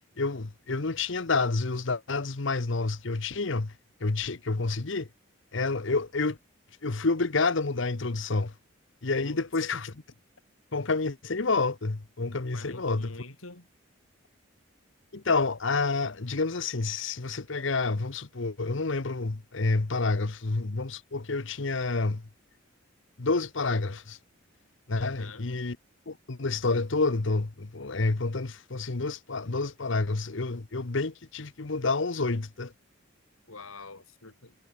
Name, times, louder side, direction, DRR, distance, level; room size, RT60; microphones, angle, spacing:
voice 1, 0.2-3.7 4.0-5.1 5.5-6.4 6.8-8.5 9.0-10.0 10.7-13.1 15.1-22.2 23.2-24.2 24.9-25.8 26.1-32.7, left 3 dB, 65° left, 1.0 m, -29 dB
voice 2, 9.2-9.6 12.5-13.7 25.0-25.5 33.5-34.5, left 3 dB, 85° left, 4.4 m, -45 dB
head